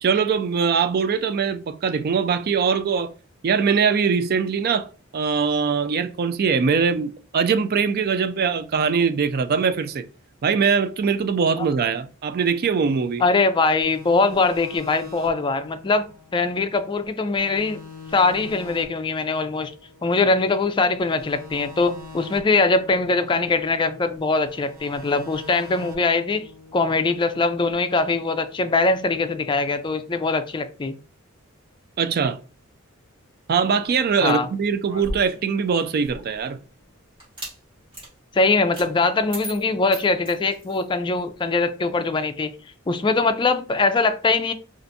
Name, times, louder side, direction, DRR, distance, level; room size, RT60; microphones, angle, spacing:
voice 1, 0.0-3.1 3.4-4.9 5.1-10.0 10.4-13.2 32.0-32.4 33.5-36.6, right 6 dB, 45° right, 0.4 m, -22 dB
voice 2, 13.2-17.8 18.1-19.7 20.0-30.9 34.2-34.5 38.3-42.5 42.9-44.5, left 3 dB, 25° left, 0.4 m, -22 dB
sound 1, 13.8-17.1 17.4-20.6 21.0-24.2 24.5-27.7, left 3 dB, 80° right, 1.0 m, -44 dB
sound 2, 34.8-36.4 37.2-37.6 37.9-38.1 38.7-38.9 39.3-40.9, right 1 dB, 25° right, 1.8 m, -36 dB
4.4 x 2.5 x 2.6 m
head